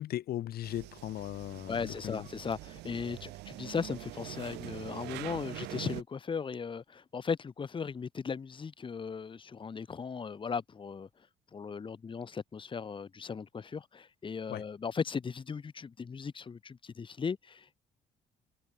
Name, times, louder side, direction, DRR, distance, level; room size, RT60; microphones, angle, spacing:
voice 1, 0.0-2.3 14.5-14.6, left 13 dB, 65° left, 2.2 m, -38 dB
sound 1, 0.6-6.0, right 19 dB, 90° right, 6.3 m, -44 dB
voice 2, 1.7-11.1 11.5-17.8, left 5 dB, 30° left, 2.2 m, -37 dB
cardioid pair, 110°, 17 cm